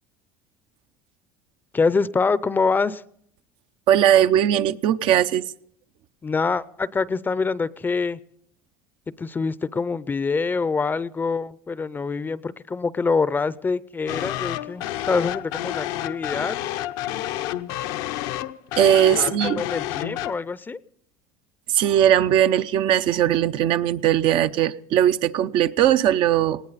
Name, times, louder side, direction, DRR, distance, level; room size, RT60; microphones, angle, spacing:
voice 1, 1.7-3.0 6.2-8.2 9.2-16.6 19.2-20.8, left 4 dB, 20° left, 18 dB, 0.6 m, -25 dB
voice 2, 3.9-5.4 18.8-19.6 21.7-26.6, right 11 dB, 60° right, 11 dB, 0.7 m, -19 dB
sound 1, 14.1-20.3, left 14 dB, 75° left, 0.8 m, -29 dB
19.5 x 17.5 x 4.1 m, 0.67 s
supercardioid pair, 105°, 10 cm